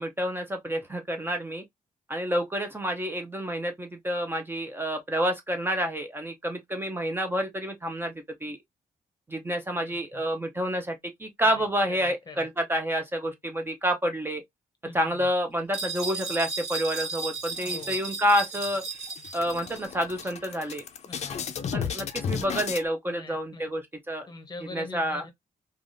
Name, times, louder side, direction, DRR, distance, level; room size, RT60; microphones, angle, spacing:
voice 1, 0.0-1.6 2.1-8.1 8.4-8.6 9.3-14.4 14.9-18.8 19.3-20.8 21.7-24.3 24.7-25.2, equal, 15° right, 0.5 m, -29 dB
voice 2, 9.8-10.2 11.4-12.5 14.8-15.3 17.6-18.0 21.1-21.6 23.1-23.7 24.3-25.3, left 3 dB, 30° left, 0.8 m, -44 dB
sound 1, 15.7-19.9, right 4 dB, 55° right, 1.7 m, -35 dB
sound 2, 17.5-18.3 18.6-18.8 19.1-22.8, left 7 dB, 50° left, 0.5 m, -34 dB
3.3 x 2.3 x 2.5 m
cardioid pair, 125°, 14 cm